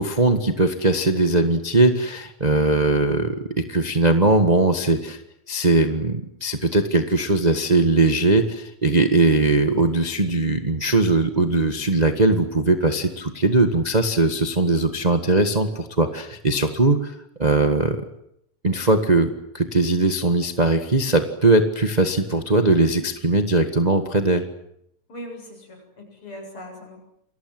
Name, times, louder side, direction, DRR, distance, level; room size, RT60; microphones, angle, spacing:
voice 1, 0.0-5.2 5.5-18.0 18.6-24.5, right 2 dB, 30° right, 6 dB, 0.7 m, -20 dB
voice 2, 25.1-27.0, equal, 40° left, 3 dB, 8.5 m, -39 dB
29.5 x 22.5 x 7.8 m, 0.76 s
omnidirectional pair, 3.7 m